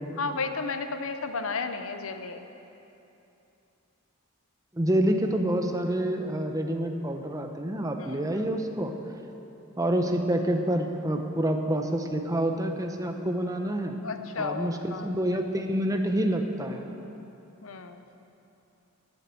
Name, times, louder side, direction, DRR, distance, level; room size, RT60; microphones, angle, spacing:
voice 1, 0.2-2.5 8.0-8.5 14.0-15.2 17.6-18.0, left 4 dB, 70° left, 8 dB, 0.7 m, -33 dB
voice 2, 4.7-8.9 9.8-14.0 14.4-16.9, right 1 dB, 15° right, 5 dB, 0.8 m, -27 dB
11.5 x 8.4 x 7.6 m, 2.9 s
head